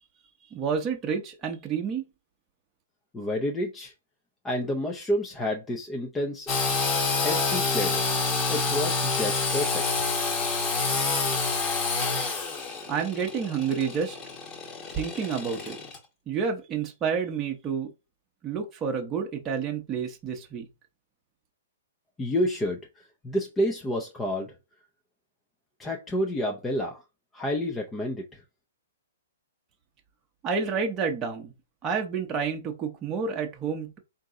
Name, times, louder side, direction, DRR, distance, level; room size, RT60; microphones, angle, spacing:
voice 1, 0.5-2.0 12.9-14.2 14.9-15.8 16.3-17.9 18.4-20.7 30.4-31.5 31.8-34.0, right 6 dB, 20° right, 0.8 m, -29 dB
voice 2, 3.1-3.9 4.4-6.5 7.2-8.0 8.5-9.9 22.2-24.5 25.8-27.0 27.3-28.4, left 1 dB, 10° left, 0.6 m, -29 dB
Engine / Sawing, 6.5-16.0, left 4 dB, 30° left, 1.1 m, -28 dB
3.8 x 2.7 x 3.7 m
hypercardioid pair, 130°, 0 cm